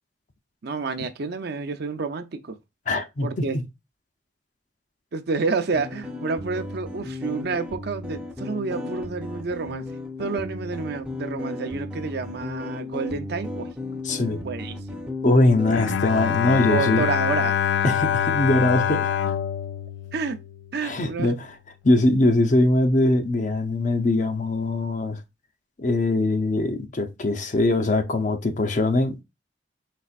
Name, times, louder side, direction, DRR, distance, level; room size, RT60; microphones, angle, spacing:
voice 1, 0.6-2.6 3.2-3.6 5.1-9.8 10.2-13.7 14.4-14.8 16.7-17.5 20.1-20.4 20.7-21.3, right 4 dB, 60° right, 0.6 m, -29 dB
voice 2, 2.9-3.5 13.8-14.4 15.2-17.0 17.8-19.3 20.8-21.5 21.8-25.2 25.8-29.2, left 2 dB, 45° left, 0.7 m, -22 dB
sound 1, 5.7-16.3, left 2 dB, 5° right, 0.7 m, -35 dB
Bowed string instrument, 15.7-21.0, left 9 dB, 85° left, 0.4 m, -25 dB
4.3 x 4.2 x 2.4 m
head